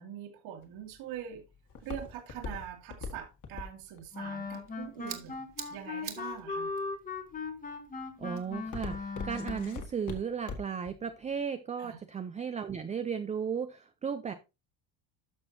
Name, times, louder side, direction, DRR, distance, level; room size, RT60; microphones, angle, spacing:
voice 1, 0.0-1.4 1.8-5.4 5.7-6.7 11.8-12.0, right 10 dB, 75° right, 2.7 m, -43 dB
Walk footsteps, 0.6-5.7 6.3-6.8 7.3-7.7 8.0-10.9 11.2-11.3, left 4 dB, 40° left, 1.8 m, -41 dB
Wind instrument woodwind instrument, 4.1-9.8, left 4 dB, 15° left, 1.2 m, -38 dB
sound 1, 4.3-9.3, right 9 dB, 40° right, 1.6 m, -49 dB
voice 2, 8.2-14.3, right 7 dB, 15° right, 0.3 m, -35 dB
12.5 x 6.0 x 2.7 m
cardioid pair, 145°, 48 cm